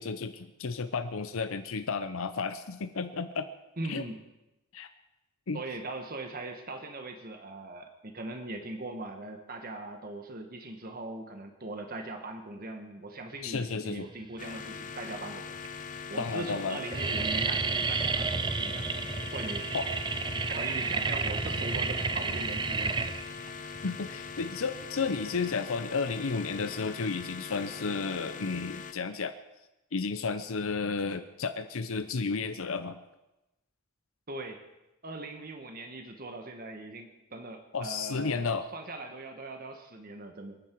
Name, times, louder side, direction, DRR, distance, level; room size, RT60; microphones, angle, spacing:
voice 1, 0.0-3.5 3.9-4.0 4.7-4.9 5.5-5.6 13.4-14.1 16.2-16.8 19.7-19.9 23.8-29.3 29.9-33.0 37.7-38.7, left 4 dB, 70° left, 10 dB, 0.7 m, -32 dB
voice 2, 3.8-4.2 5.5-15.5 16.1-18.9 19.3-19.7 20.5-23.1 34.3-34.6 35.0-40.6, right 2 dB, 40° right, 5 dB, 1.4 m, -40 dB
sound 1, 14.3-14.9 15.6-15.7 15.9-16.3 16.6-25.5, right 4 dB, 20° right, 0.5 m, -31 dB
sound 2, 14.4-28.9, left 6 dB, 35° left, 0.9 m, -42 dB
28.0 x 9.6 x 4.6 m, 0.96 s
head